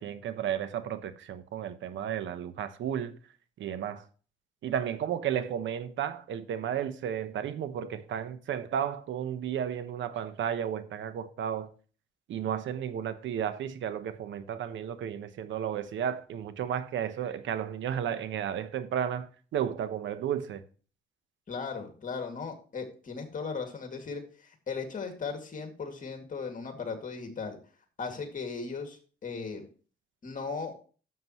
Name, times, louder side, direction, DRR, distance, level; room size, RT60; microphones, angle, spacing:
voice 1, 0.0-3.2 3.6-4.1 4.6-11.7 12.3-20.6, right 9 dB, 70° right, 1.0 m, -33 dB
voice 2, 21.5-27.6 28.0-29.7 30.2-30.7, left 5 dB, 40° left, 2.3 m, -37 dB
11.0 x 7.5 x 3.1 m
cardioid pair, 90°, 20 cm